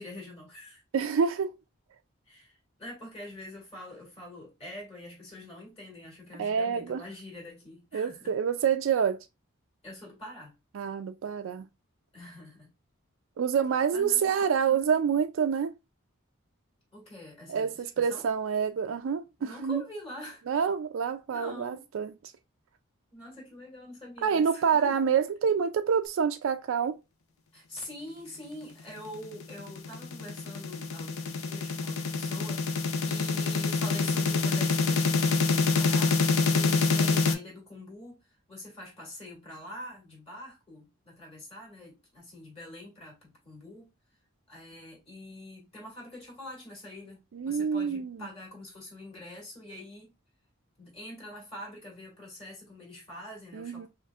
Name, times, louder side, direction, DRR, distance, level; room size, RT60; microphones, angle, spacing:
voice 1, 0.0-0.8 2.3-8.3 9.8-10.5 12.1-12.7 13.9-15.0 16.9-18.2 19.4-20.4 21.3-21.8 23.1-25.0 27.5-43.9 44.5-50.1 50.8-53.9, left 1 dB, 30° left, 2.2 m, -45 dB
voice 2, 0.9-1.5 6.4-7.0 7.9-9.2 10.7-11.7 13.4-15.7 17.5-19.8 20.5-22.1 24.2-27.0 47.3-48.2 53.5-53.9, right 7 dB, 75° right, 0.3 m, -27 dB
sound 1, 29.2-37.3, left 4 dB, 85° left, 0.7 m, -26 dB
5.3 x 2.5 x 2.4 m
head